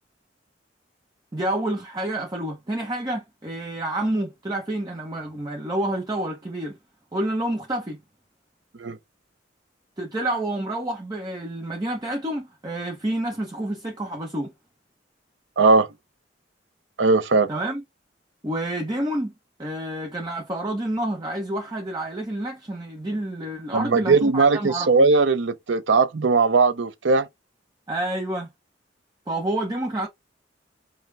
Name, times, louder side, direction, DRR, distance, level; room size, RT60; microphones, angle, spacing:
voice 1, 1.3-6.8 7.1-8.0 10.0-14.5 17.5-17.8 18.4-19.3 19.6-24.9 27.9-28.5 29.3-30.1, right 1 dB, 25° right, 0.9 m, -28 dB
voice 2, 15.6-15.9 17.0-17.5 23.7-27.3, right 4 dB, 85° right, 0.6 m, -19 dB
5.5 x 2.2 x 3.3 m
head